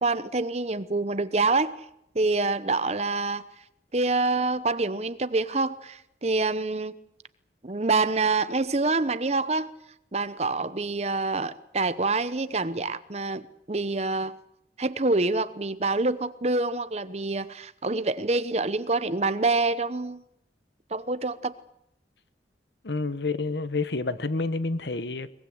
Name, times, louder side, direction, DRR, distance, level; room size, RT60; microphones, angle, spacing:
voice 1, 0.0-1.8 2.1-3.4 3.9-7.0 7.6-9.7 10.1-14.4 14.8-20.2 20.9-21.6, right 3 dB, 35° right, 0.9 m, -26 dB
voice 2, 22.8-25.3, left 3 dB, 75° left, 1.2 m, -29 dB
22.5 x 21.0 x 7.9 m
head